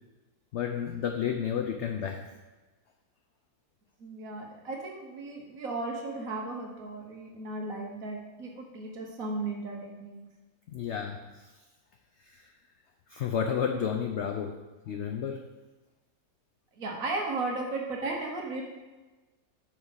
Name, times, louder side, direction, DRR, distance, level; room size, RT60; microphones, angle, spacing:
voice 1, 0.5-2.3 10.7-11.5 12.3-12.5 13.1-14.6 14.9-15.4, left 7 dB, 75° left, 4 dB, 0.6 m, -31 dB
voice 2, 4.0-10.2 16.8-18.6, right 2 dB, 60° right, 0 dB, 1.6 m, -35 dB
6.2 x 4.1 x 6.2 m, 1.2 s
omnidirectional pair, 1.7 m